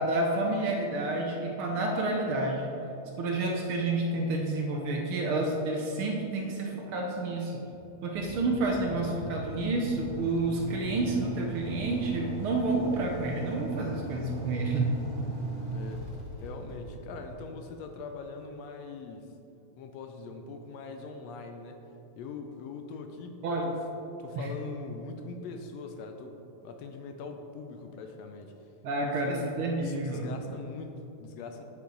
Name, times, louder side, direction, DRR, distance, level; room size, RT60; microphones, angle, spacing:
voice 1, 0.0-2.7 3.2-7.6 8.0-14.9 23.4-23.7 24.4-24.5 28.8-30.3, right 2 dB, 70° right, 0 dB, 1.3 m, -29 dB
Motorcycle / Idling, 8.1-18.1, right 3 dB, 25° right, 2.2 m, -39 dB
voice 2, 15.7-16.1 16.4-19.3 19.8-21.8 22.2-23.3 23.6-23.8 24.2-28.5 29.0-31.6, left 4 dB, 75° left, 5 dB, 1.7 m, -42 dB
8.5 x 8.3 x 4.0 m, 3.0 s
omnidirectional pair, 3.4 m